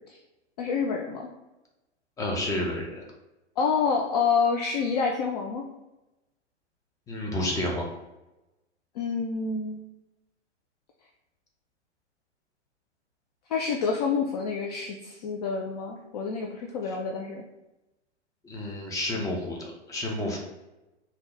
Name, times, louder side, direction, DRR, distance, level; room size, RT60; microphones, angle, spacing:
voice 1, 0.6-1.3 3.6-5.6 9.0-9.8 13.5-17.4, left 5 dB, 35° left, 1 dB, 0.4 m, -28 dB
voice 2, 2.2-3.0 7.1-7.9 16.9-17.0 18.4-20.4, left 1 dB, 10° left, -1 dB, 0.7 m, -30 dB
3.8 x 2.8 x 3.1 m, 0.99 s
figure-of-eight pair, 105°, 35 cm